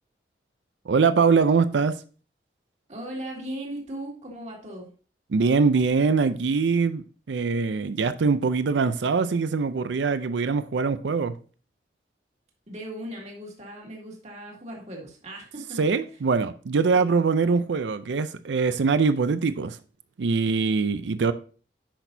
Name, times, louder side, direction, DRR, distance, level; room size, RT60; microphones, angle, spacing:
voice 1, 0.9-1.9 5.3-11.3 15.8-19.8 20.2-21.3, right 4 dB, 85° right, 0.5 m, -23 dB
voice 2, 2.9-4.9 12.7-15.8 16.9-17.2, right 1 dB, 40° right, 2.1 m, -38 dB
10.0 x 6.1 x 2.7 m
head